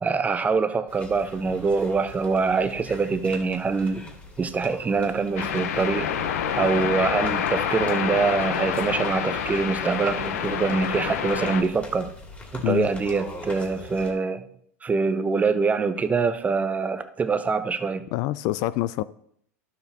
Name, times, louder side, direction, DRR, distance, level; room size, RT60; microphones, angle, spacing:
voice 1, 0.0-4.0 4.4-6.1 6.6-12.1 12.5-14.4 14.8-18.0, right 4 dB, 20° right, 11 dB, 0.6 m, -24 dB
sound 1, 0.9-14.1, left 2 dB, 20° left, 2.2 m, -43 dB
sound 2, 5.4-11.6, left 8 dB, 75° left, 0.9 m, -27 dB
voice 2, 12.6-12.9 18.1-19.0, left 16 dB, 50° left, 17 dB, 0.3 m, -26 dB
12.0 x 7.1 x 2.8 m, 0.67 s
hypercardioid pair, 100°, 8 cm